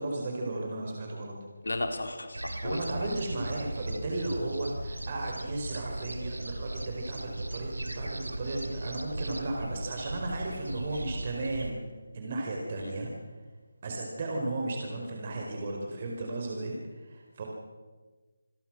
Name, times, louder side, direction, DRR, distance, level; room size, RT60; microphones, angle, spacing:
voice 1, 0.0-1.3 2.6-11.8 12.1-13.1 13.8-17.4, right 2 dB, 40° right, 0 dB, 4.8 m, -35 dB
voice 2, 1.6-2.8 12.8-12.9, left 2 dB, 75° left, 6 dB, 4.1 m, -34 dB
sound 1, 2.3-11.7, right 1 dB, 85° right, 2.4 m, -38 dB
28.5 x 21.0 x 6.3 m, 1.4 s
figure-of-eight pair, 155°, 0 cm